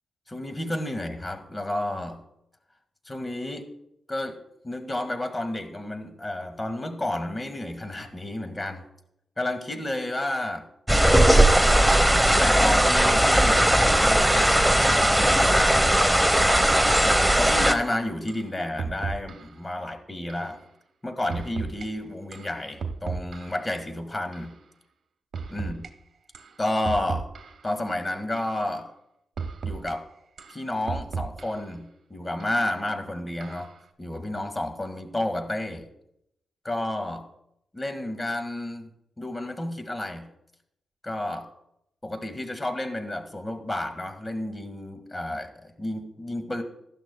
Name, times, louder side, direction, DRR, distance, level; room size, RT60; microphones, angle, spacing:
voice 1, 0.3-2.2 3.1-3.7 4.1-4.4 4.6-8.8 9.4-10.7 11.6-14.9 15.2-16.2 17.4-20.6 21.0-24.5 25.5-25.8 26.6-27.3 27.6-28.9 29.6-30.1 30.5-33.7 34.0-35.8 36.6-37.3 37.7-38.9 39.2-40.3 41.0-41.5 42.0-46.6, left 1 dB, 25° left, 8 dB, 1.7 m, -31 dB
sound 1, 10.9-17.7, right 1 dB, 5° right, 0.9 m, -19 dB
sound 2, 17.8-17.9 18.3-18.5 18.8-19.5 20.3-20.5 21.3-21.9 22.3-23.7 24.3-24.5 25.3-25.9 26.3-26.5 26.8-27.7 28.4-28.6 29.4-29.9 30.4-31.7 32.4-32.6 33.4-33.8, right 5 dB, 65° right, 1.0 m, -34 dB
15.5 x 11.5 x 2.2 m, 0.79 s
supercardioid pair, 50°, 0 cm